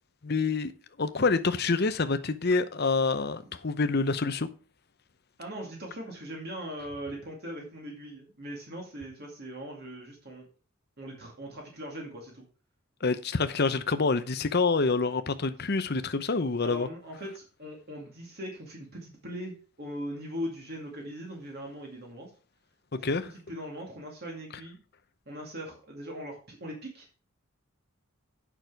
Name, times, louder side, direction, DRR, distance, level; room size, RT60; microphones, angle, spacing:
voice 1, 0.2-0.7 1.0-4.5 13.0-16.9 23.0-23.3, left 4 dB, 50° left, 0.8 m, -27 dB
voice 2, 5.4-10.5 11.0-12.4 16.6-22.3 22.9-24.8 25.3-27.2, equal, 50° right, 2.3 m, -40 dB
9.2 x 6.2 x 4.7 m
head